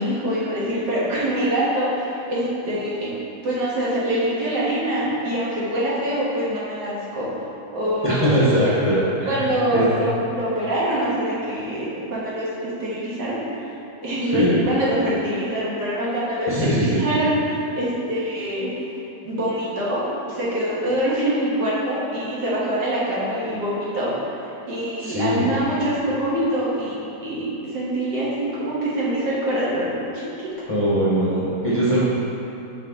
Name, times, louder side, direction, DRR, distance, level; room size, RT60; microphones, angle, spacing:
voice 1, 0.0-3.1 3.4-7.3 7.7-8.5 9.3-13.7 14.0-18.7 19.2-24.1 24.7-28.3 28.6-30.2, right 1 dB, 85° right, -8 dB, 2.0 m, -24 dB
voice 2, 8.0-9.5 9.7-9.9 14.2-14.6 16.5-17.0 25.0-25.5 30.7-32.0, equal, 30° left, -9 dB, 0.6 m, -21 dB
5.5 x 5.1 x 3.6 m, 2.8 s
omnidirectional pair, 1.7 m